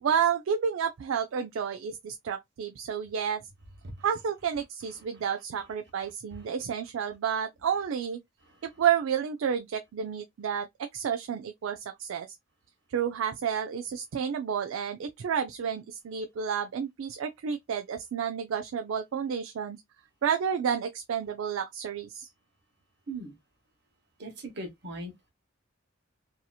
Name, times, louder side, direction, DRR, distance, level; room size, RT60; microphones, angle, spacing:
voice 1, 0.0-3.4 4.0-8.2 8.6-12.4 12.9-19.8 20.2-22.3, right 7 dB, 80° right, 0.4 m, -30 dB
voice 2, 23.1-23.4 24.2-25.3, right 2 dB, 55° right, 1.1 m, -40 dB
2.8 x 2.7 x 2.3 m
head